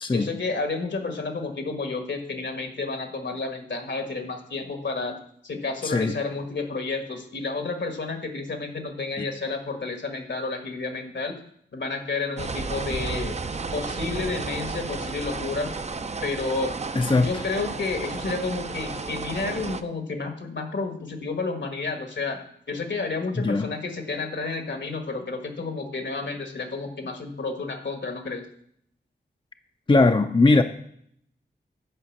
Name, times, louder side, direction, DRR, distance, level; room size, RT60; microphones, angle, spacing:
voice 1, 0.1-5.1 5.4-11.4 11.7-13.4 13.7-15.7 16.2-16.7 17.1-28.5, left 3 dB, 70° left, 6 dB, 1.6 m, -31 dB
voice 2, 5.8-6.1 9.2-9.3 17.0-17.3 23.4-23.7 29.9-30.6, left 3 dB, 25° left, 7 dB, 0.6 m, -20 dB
sound 1, 12.4-19.8, right 4 dB, 35° right, 0.6 m, -32 dB
9.7 x 5.0 x 7.3 m, 0.67 s
wide cardioid pair, 60°, 19 cm